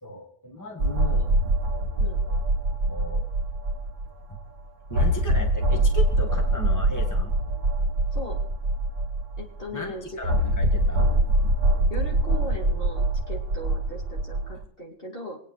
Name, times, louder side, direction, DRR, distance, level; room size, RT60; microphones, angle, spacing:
voice 1, 0.0-1.3 2.2-2.4 2.7-3.2 4.3-4.4 4.9-7.3 9.7-11.1, left 1 dB, 15° left, 1 dB, 1.9 m, -37 dB
sound 1, 0.8-4.1 4.4-4.5 4.9-9.4 10.2-14.5, right 1 dB, 90° right, 1.4 m, -23 dB
voice 2, 9.4-10.2 11.9-15.4, equal, 50° left, -1 dB, 2.8 m, -38 dB
25.5 x 9.1 x 4.1 m, 0.62 s
omnidirectional pair, 1.2 m